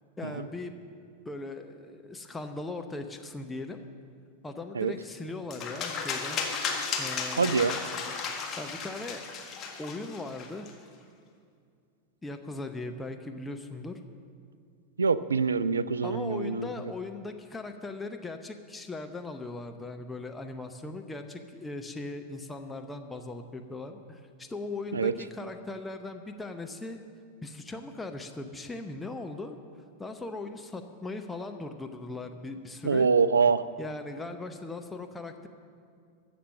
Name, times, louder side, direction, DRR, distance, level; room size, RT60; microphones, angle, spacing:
voice 1, 0.2-0.7 1.2-3.8 4.4-6.4 7.0-7.6 8.6-9.2 9.8-10.7 12.2-14.0 16.0-27.0 27.4-29.6 30.0-33.1 33.8-35.5, left 2 dB, 10° left, 5 dB, 0.7 m, -39 dB
sound 1, 5.5-10.7, left 5 dB, 30° left, 1.7 m, -34 dB
voice 2, 7.4-7.8 15.0-16.7 24.9-25.1 32.8-33.6, right 5 dB, 75° right, 15 dB, 0.4 m, -25 dB
14.5 x 7.0 x 7.6 m, 2.3 s
figure-of-eight pair, 90°, 0 cm